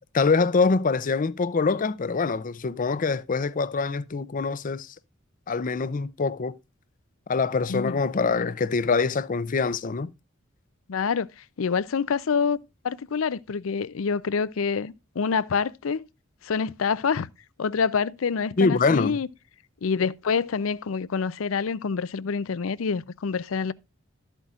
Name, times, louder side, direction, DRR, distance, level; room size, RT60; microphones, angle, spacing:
voice 1, 0.1-4.9 5.5-6.5 7.3-10.1 18.6-19.2, left 4 dB, 40° left, 0.5 m, -24 dB
voice 2, 10.9-11.3 11.6-12.6 12.8-16.1 16.4-17.3 17.6-19.3 19.8-23.7, left 5 dB, 85° left, 0.5 m, -26 dB
13.0 x 8.2 x 2.4 m
head